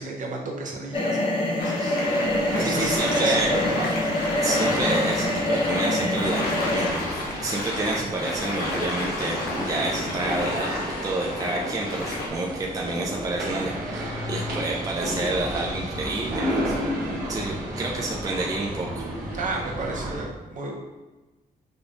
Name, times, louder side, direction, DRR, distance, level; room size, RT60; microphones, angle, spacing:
voice 1, 0.0-2.0 2.5-3.9 19.4-20.8, right 3 dB, 55° right, -1 dB, 0.9 m, -33 dB
sound 1, 0.9-6.9, left 1 dB, 35° left, 0.6 m, -25 dB
sound 2, 1.6-12.3, left 2 dB, 85° left, 0.9 m, -31 dB
sound 3, 2.2-20.2, equal, 80° right, 1.3 m, -33 dB
voice 2, 2.6-3.5 4.4-16.7 17.3-19.0, right 2 dB, 20° right, -2 dB, 0.5 m, -29 dB
5.1 x 2.3 x 3.8 m, 1.1 s
wide cardioid pair, 125°, 15 cm